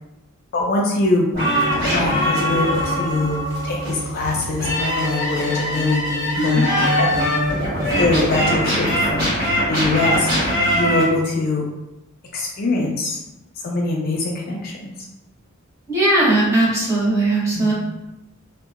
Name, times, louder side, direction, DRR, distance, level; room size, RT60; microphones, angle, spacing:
voice 1, 0.5-1.3 1.8-6.0 6.4-7.2 8.0-9.4 9.7-10.3 10.7-11.7 12.3-13.2 13.6-14.9 17.5-17.7, left 2 dB, 45° left, -1 dB, 0.4 m, -23 dB
sound 1, 1.3-11.0, equal, 50° right, 1.4 m, -21 dB
voice 2, 6.3-6.7 15.9-17.7, right 2 dB, 15° right, -8 dB, 0.9 m, -18 dB
2.7 x 2.1 x 2.3 m, 0.93 s
head